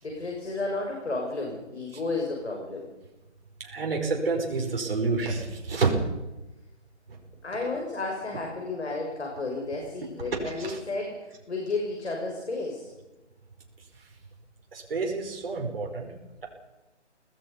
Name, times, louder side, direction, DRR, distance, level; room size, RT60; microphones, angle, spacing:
voice 1, 0.0-2.9 7.4-12.9, left 3 dB, 70° left, 1 dB, 6.4 m, -32 dB
voice 2, 3.6-5.9 10.6-10.8 14.7-16.1, right 4 dB, 55° right, 0 dB, 5.4 m, -28 dB
26.0 x 19.5 x 5.5 m, 1.0 s
figure-of-eight pair, 160°, 35 cm